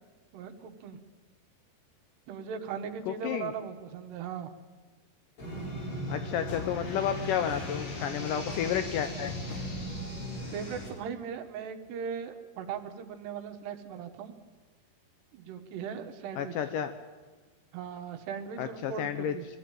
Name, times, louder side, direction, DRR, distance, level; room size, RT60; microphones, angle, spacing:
voice 1, 0.3-1.0 2.3-4.5 10.5-14.3 15.3-16.5 17.7-19.5, right 7 dB, 75° right, 6 dB, 3.4 m, -38 dB
voice 2, 3.1-3.5 6.1-9.3 16.4-16.9 18.6-19.3, left 9 dB, 85° left, 9 dB, 1.9 m, -31 dB
sound 1, 5.4-10.9, right 1 dB, 40° left, 5.6 m, -38 dB
sound 2, 6.5-10.8, left 4 dB, 65° left, 1.2 m, -42 dB
24.0 x 14.0 x 9.1 m, 1.4 s
omnidirectional pair, 4.9 m